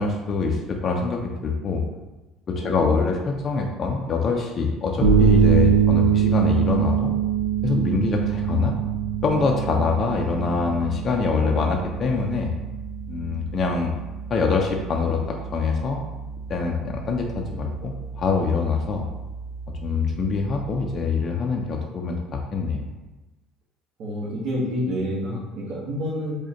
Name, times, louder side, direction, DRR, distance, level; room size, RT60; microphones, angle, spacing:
voice 1, 0.0-1.8 2.5-7.1 7.6-8.7 9.2-12.5 13.1-13.9 14.3-16.0 16.5-19.1 19.8-22.9, left 4 dB, 30° left, 1 dB, 0.3 m, -24 dB
voice 2, 2.6-3.0 24.0-26.4, equal, 60° right, -8 dB, 0.9 m, -28 dB
sound 1, 5.0-20.9, right 7 dB, 85° right, 0.6 m, -25 dB
4.7 x 2.1 x 2.8 m, 1.1 s
cardioid pair, 145°, 0 cm